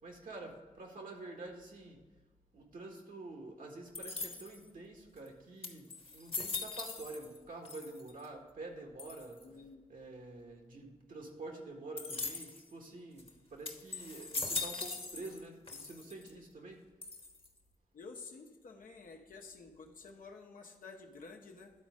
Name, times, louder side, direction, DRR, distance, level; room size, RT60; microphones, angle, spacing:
voice 1, 0.0-2.0 2.5-9.4 9.9-16.8, right 2 dB, 75° right, 1 dB, 1.6 m, -48 dB
sound 1, 3.9-4.7 5.3-5.4 5.6-7.4 7.6-8.3 9.0-9.4 12.0-12.6 13.2-13.3 13.6-15.4 15.7-16.3 17.0-17.6, left 3 dB, 40° left, 1.1 m, -40 dB
voice 2, 9.4-9.8 17.9-21.7, left 4 dB, 85° left, 2 dB, 0.9 m, -51 dB
11.5 x 4.2 x 4.9 m, 1.3 s
cardioid pair, 45°, 14 cm